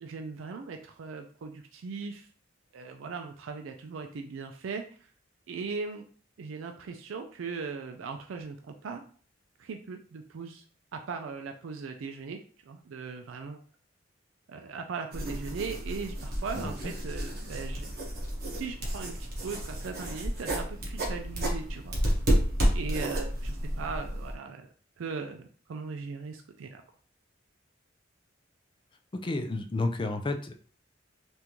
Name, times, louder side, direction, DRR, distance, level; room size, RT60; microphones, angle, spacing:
voice 1, 0.0-2.3 2.7-5.0 5.5-6.0 6.4-9.0 9.6-10.6 10.9-12.4 12.7-13.6 14.5-17.9 18.5-22.2 22.7-24.7 25.0-26.8, right 5 dB, 85° right, 5 dB, 0.4 m, -39 dB
sound 1, 15.1-24.3, equal, 50° right, 1.0 m, -31 dB
voice 2, 16.5-16.9 29.1-30.5, left 2 dB, 25° left, 7 dB, 0.4 m, -31 dB
3.6 x 2.5 x 2.9 m, 0.43 s
head